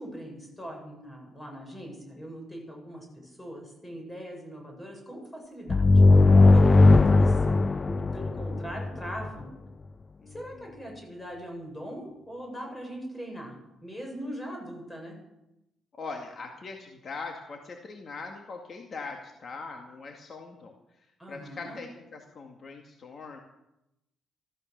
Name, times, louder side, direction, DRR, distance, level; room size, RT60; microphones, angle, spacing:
voice 1, 0.0-6.2 6.5-7.4 7.8-9.5 10.3-13.5 13.8-15.1 21.2-21.8, equal, 15° left, 1 dB, 6.7 m, -41 dB
sound 1, 5.7-9.3, left 3 dB, 30° left, 0.4 m, -18 dB
voice 2, 10.2-11.0 15.9-23.4, left 4 dB, 45° left, 2 dB, 2.1 m, -42 dB
14.5 x 13.5 x 6.7 m, 0.89 s
cardioid pair, 90°, 0 cm